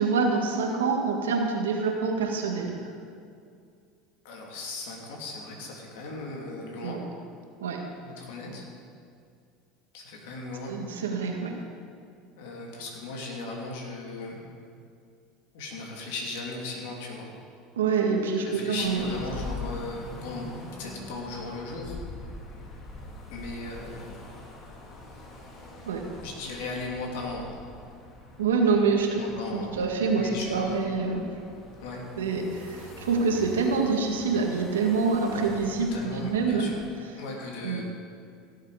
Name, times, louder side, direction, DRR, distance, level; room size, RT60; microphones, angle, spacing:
voice 1, 0.0-2.8 6.8-7.0 7.6-7.8 10.7-11.6 17.8-19.0 25.9-26.0 28.4-29.2 29.5-31.2 32.2-36.7 37.6-37.8, right 4 dB, 90° right, 2 dB, 1.7 m, -26 dB
voice 2, 4.2-7.0 8.0-8.7 9.9-10.7 12.4-14.4 15.5-17.3 18.3-20.5 20.8-22.0 23.3-24.1 26.2-27.5 29.1-29.7 30.1-30.8 31.8-32.0 35.8-36.8 37.1-37.8, left 3 dB, 75° left, -1 dB, 2.7 m, -37 dB
sound 1, 18.7-36.9, left 2 dB, 45° left, 2.3 m, -44 dB
16.5 x 7.5 x 5.0 m, 2.4 s
hypercardioid pair, 90°, 0 cm